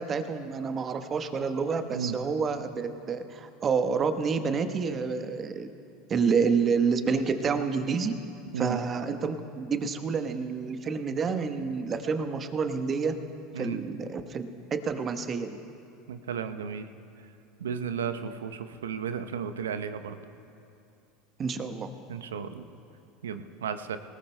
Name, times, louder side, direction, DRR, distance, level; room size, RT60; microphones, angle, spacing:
voice 1, 0.0-5.7 6.1-8.1 8.6-13.1 13.6-15.5 21.4-21.9, right 5 dB, 35° right, 8 dB, 1.1 m, -28 dB
voice 2, 16.1-16.9 17.6-20.2 22.1-22.6 23.2-24.0, right 7 dB, 75° right, 9 dB, 0.8 m, -34 dB
25.5 x 18.5 x 2.2 m, 2.6 s
figure-of-eight pair, 75°, 0 cm